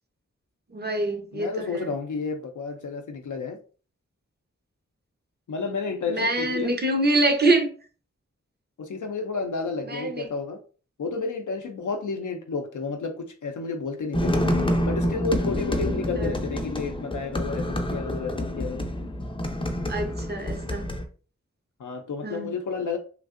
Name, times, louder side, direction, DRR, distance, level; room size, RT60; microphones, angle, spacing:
voice 1, 0.7-1.9 6.1-7.7 9.9-10.2 16.2-16.4 19.9-20.9 22.2-22.5, right 2 dB, 35° right, 0.7 m, -25 dB
voice 2, 1.3-3.6 5.5-6.7 8.8-10.6 11.0-14.3 14.8-18.9 21.8-23.0, left 4 dB, 85° left, 0.5 m, -31 dB
sound 1, 14.1-21.0, left 1 dB, 20° left, 0.5 m, -27 dB
3.2 x 2.5 x 2.4 m
wide cardioid pair, 70°, 30 cm